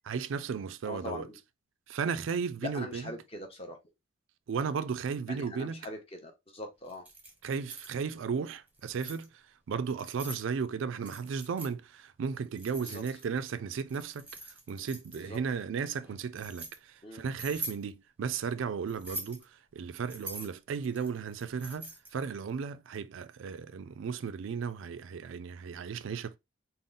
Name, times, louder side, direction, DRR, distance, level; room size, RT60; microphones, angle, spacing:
voice 1, 0.0-1.3 1.9-3.1 4.5-5.9 7.4-9.3 9.7-14.3 14.7-19.4 19.7-26.4, right 6 dB, 75° right, 0.4 m, -35 dB
voice 2, 0.8-1.4 2.6-3.8 5.3-7.0 12.8-13.0 15.2-15.4 17.0-17.2, left 1 dB, 30° left, 0.8 m, -42 dB
Keys jangling, 6.9-8.0 8.7-9.2 9.9-10.4 11.0-11.7 12.6-13.4 13.9-15.4 16.0-16.7 17.3-17.8 18.9-19.4 20.1-22.2, right 2 dB, 10° right, 0.8 m, -43 dB
3.7 x 2.1 x 3.8 m
head